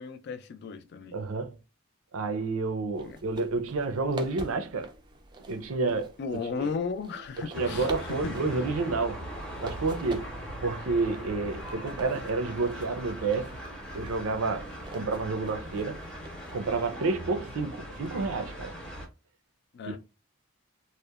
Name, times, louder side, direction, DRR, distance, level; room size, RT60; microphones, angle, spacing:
voice 1, 0.0-1.2 3.0-3.2 6.2-8.4 19.7-20.0, left 5 dB, 55° left, 0.3 m, -35 dB
voice 2, 1.1-1.6 2.1-4.9 5.5-6.7 7.4-9.2 9.6-10.3 10.6-13.5 13.9-16.0 16.5-18.7 19.9-20.0, right 3 dB, 85° right, 0.5 m, -30 dB
sound 1, 2.9-17.0, right 2 dB, 20° right, 0.3 m, -46 dB
sound 2, 7.5-19.1, equal, 5° left, 0.7 m, -40 dB
2.8 x 2.1 x 2.2 m
head